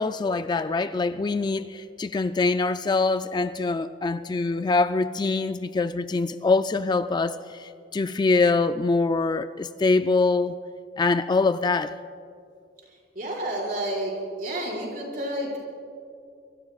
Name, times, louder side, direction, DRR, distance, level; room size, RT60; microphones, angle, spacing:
voice 1, 0.0-10.6 11.0-12.0, left 3 dB, 25° left, 0.3 m, -24 dB
voice 2, 13.2-14.1 14.4-15.6, right 1 dB, 50° right, 5.3 m, -30 dB
25.5 x 23.0 x 2.4 m
head